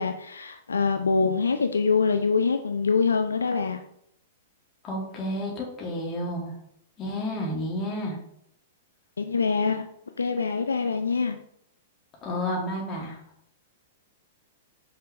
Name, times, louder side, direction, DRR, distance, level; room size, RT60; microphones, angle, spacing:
voice 1, 0.0-3.8 9.2-9.8 10.2-11.4, left 5 dB, 85° left, 7 dB, 0.5 m, -24 dB
voice 2, 4.8-6.6 7.0-8.2 12.2-13.2, left 1 dB, 30° left, -2 dB, 2.3 m, -31 dB
5.7 x 5.6 x 3.4 m, 0.71 s
hypercardioid pair, 110°, 0 cm